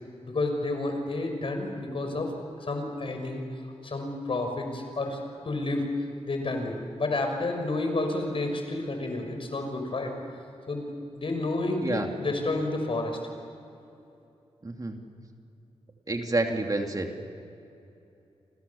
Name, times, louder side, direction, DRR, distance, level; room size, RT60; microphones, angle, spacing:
voice 1, 0.2-2.3 2.6-3.4 3.8-5.8 6.2-10.2 10.7-10.8 11.2-13.2, left 2 dB, 55° left, 4 dB, 6.0 m, -30 dB
voice 2, 14.6-15.0 16.1-17.1, right 2 dB, 35° right, 3 dB, 3.0 m, -28 dB
29.5 x 26.0 x 7.2 m, 2.8 s
cardioid pair, 70°, 11 cm